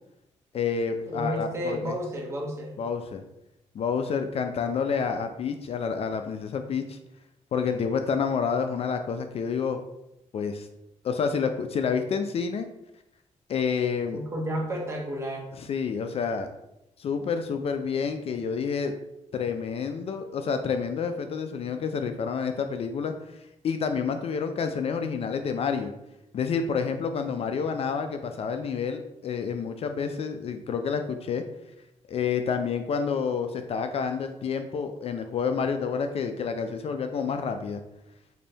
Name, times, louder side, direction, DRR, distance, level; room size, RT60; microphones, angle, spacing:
voice 1, 0.5-1.9 2.8-3.2 3.7-7.0 7.5-9.8 10.3-10.7 11.0-12.7 13.5-14.2 15.6-16.5 17.0-18.9 19.3-25.9 26.3-31.4 32.1-37.8, left 6 dB, 55° left, 7 dB, 0.3 m, -29 dB
voice 2, 1.1-2.7 14.1-15.5, equal, 20° right, -2 dB, 1.2 m, -31 dB
3.9 x 2.6 x 3.4 m, 0.87 s
cardioid pair, 90°, 12 cm